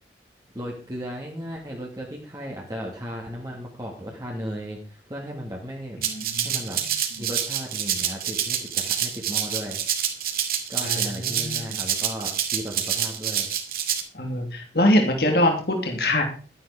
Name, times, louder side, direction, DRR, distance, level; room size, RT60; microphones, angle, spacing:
voice 1, 0.5-6.0 6.4-6.8 7.2-9.8 10.7-13.5, equal, 20° right, -2 dB, 2.4 m, -35 dB
voice 2, 6.0-6.6 10.8-11.6 14.1-16.2, left 1 dB, 60° left, 2 dB, 2.8 m, -23 dB
Rattle (instrument), 6.0-14.0, right 9 dB, 55° right, 2.4 m, -27 dB
13.0 x 11.0 x 5.0 m, 0.39 s
head